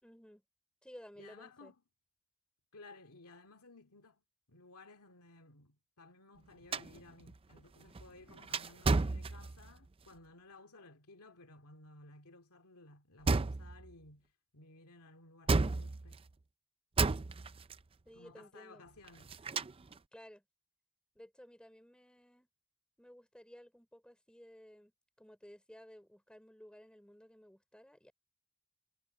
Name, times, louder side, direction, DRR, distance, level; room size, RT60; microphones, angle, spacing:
voice 1, 0.0-0.4 0.8-1.7 18.0-18.8 20.1-20.4 21.1-22.5 23.0-24.9 25.2-28.1, equal, 5° left, 4.7 m, -56 dB
voice 2, 1.2-1.8 2.7-4.2 4.5-16.2 18.1-19.4, left 2 dB, 80° left, 2.3 m, -57 dB
sound 1, 6.7-9.9 13.3-13.9 15.5-16.3 17.0-17.8 19.0-20.0, right 3 dB, 25° right, 0.5 m, -33 dB
head